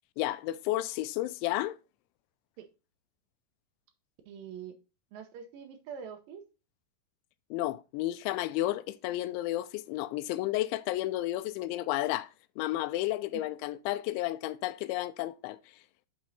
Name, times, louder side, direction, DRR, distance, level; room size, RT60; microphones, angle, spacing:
voice 1, 0.2-1.8 7.5-12.3 12.6-15.6, left 15 dB, 90° left, 2.9 m, -32 dB
voice 2, 4.3-4.7 5.1-6.4 13.3-13.4, right 7 dB, 80° right, 2.0 m, -44 dB
8.5 x 4.6 x 4.1 m
omnidirectional pair, 5.2 m